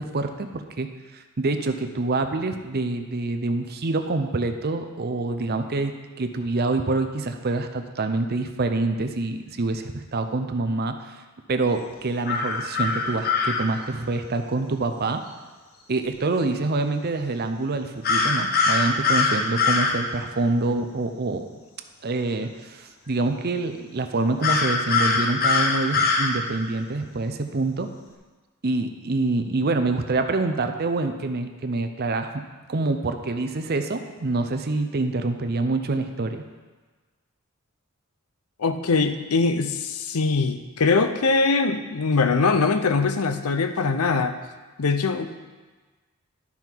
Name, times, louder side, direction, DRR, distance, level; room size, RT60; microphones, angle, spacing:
voice 1, 0.0-11.2 11.5-15.2 15.9-21.5 22.0-27.9 28.6-32.4 32.7-36.4, right 3 dB, 45° right, 7 dB, 0.6 m, -26 dB
sound 1, 12.3-13.6 18.0-19.9 24.4-26.3, left 4 dB, 45° left, 1.0 m, -22 dB
voice 2, 38.6-44.4 44.8-45.3, left 4 dB, 80° left, 9 dB, 0.6 m, -22 dB
12.0 x 5.6 x 4.6 m, 1.3 s
head